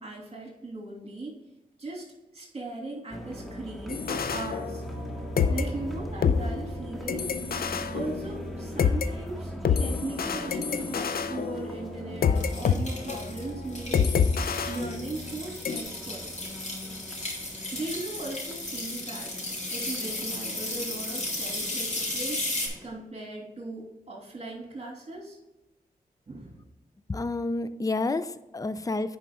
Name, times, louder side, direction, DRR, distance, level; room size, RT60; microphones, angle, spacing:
voice 1, 0.0-1.3 1.8-2.1 2.3-4.8 5.4-7.4 7.9-9.5 9.8-14.1 14.7-16.3 17.7-19.4 19.7-22.4 22.8-25.4 26.3-26.6, right 2 dB, 45° right, -2 dB, 2.7 m, -38 dB
sound 1, 3.1-22.9, equal, ahead, 1.8 m, -41 dB
sound 2, 3.9-5.1 5.4-9.1 9.6-12.8 13.1-13.3 13.9-15.4 15.6-15.8, left 6 dB, 75° left, 0.5 m, -27 dB
sound 3, 12.4-22.7, left 2 dB, 50° left, 3.1 m, -35 dB
voice 2, 27.1-29.2, left 2 dB, 25° left, 13 dB, 0.5 m, -29 dB
9.9 x 5.2 x 3.7 m, 0.99 s
cardioid pair, 55°, 15 cm